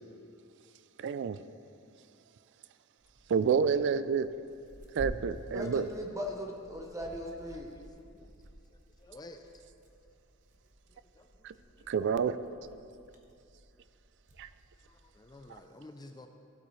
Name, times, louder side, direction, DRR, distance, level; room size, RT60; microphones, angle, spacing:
voice 1, 1.0-1.4 3.3-4.3 4.9-5.9 11.4-11.5 11.9-12.4 14.4-14.5, right 6 dB, 55° right, 14 dB, 0.3 m, -28 dB
Tearing, 3.0-15.6, equal, 40° right, 1.1 m, -51 dB
voice 2, 5.5-7.7, equal, 15° right, 0 dB, 0.9 m, -38 dB
voice 3, 7.5-8.4 8.7-9.5 10.9-11.9 14.8-16.3, left 2 dB, 20° left, 6 dB, 0.4 m, -53 dB
15.5 x 8.2 x 3.2 m, 2.5 s
head